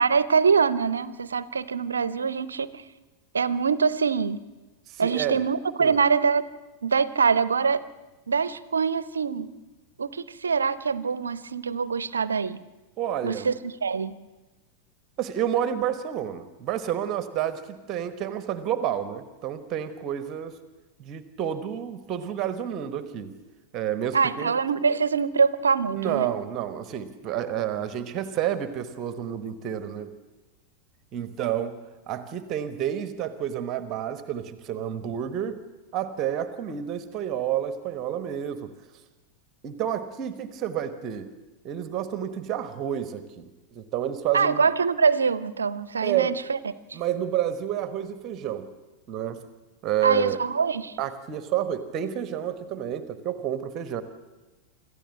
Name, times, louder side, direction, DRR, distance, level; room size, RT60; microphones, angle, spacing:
voice 1, 0.0-2.8 3.3-4.4 5.0-6.5 6.8-7.9 8.3-9.5 10.0-12.6 13.2-14.2 24.1-26.3 44.3-46.6 50.0-51.0, right 5 dB, 70° right, 17 dB, 0.7 m, -24 dB
voice 2, 4.9-5.4 5.8-6.0 13.0-13.5 15.2-20.5 21.0-23.3 23.7-24.5 25.9-30.1 31.1-31.8 32.1-35.6 35.9-38.7 39.6-41.3 41.6-44.7 46.0-46.4 46.9-48.7 49.1-49.4 49.8-50.4 51.0-54.0, right 10 dB, 35° right, 12 dB, 1.2 m, -29 dB
26.0 x 14.5 x 7.6 m, 1.2 s
figure-of-eight pair, 90°, 0 cm